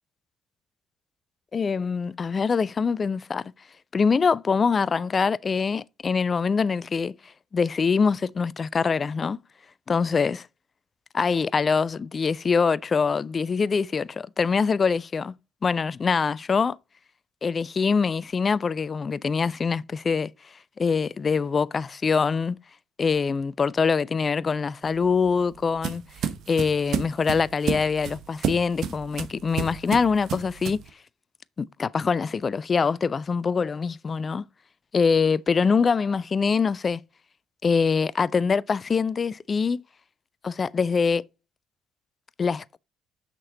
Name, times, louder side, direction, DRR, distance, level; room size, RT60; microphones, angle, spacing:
voice 1, 1.5-3.5 3.9-7.2 7.5-9.4 9.9-10.5 11.1-15.3 15.6-16.8 17.4-20.3 20.8-22.6 23.0-26.0 26.5-30.8 31.6-34.5 34.9-37.0 37.6-39.8 40.4-41.2 42.4-42.8, left 5 dB, 40° left, 0.4 m, -24 dB
sound 1, 24.9-30.9, right 8 dB, 60° right, 0.9 m, -31 dB
6.4 x 6.0 x 3.9 m
hypercardioid pair, 50°, 0 cm